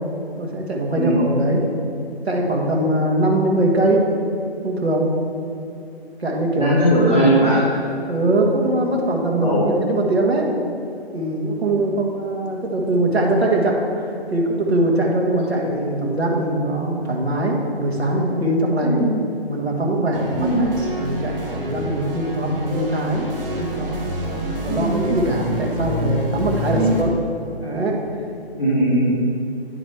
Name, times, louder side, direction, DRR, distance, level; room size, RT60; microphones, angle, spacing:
voice 1, 0.4-1.6 2.3-4.1 4.6-5.1 6.2-6.8 8.1-10.5 11.1-19.0 19.5-20.7 21.0-23.3 23.6-27.1 27.6-28.0, right 1 dB, 75° right, -1 dB, 1.5 m, -21 dB
voice 2, 6.6-7.6 9.4-9.7 18.8-19.1 20.4-20.7 24.7-25.0 26.7-26.9 28.6-29.1, right 1 dB, ahead, -18 dB, 0.5 m, -19 dB
sound 1, 20.1-27.0, equal, 60° right, 1.5 m, -28 dB
9.7 x 5.1 x 3.3 m, 2.6 s
figure-of-eight pair, 145°, 32 cm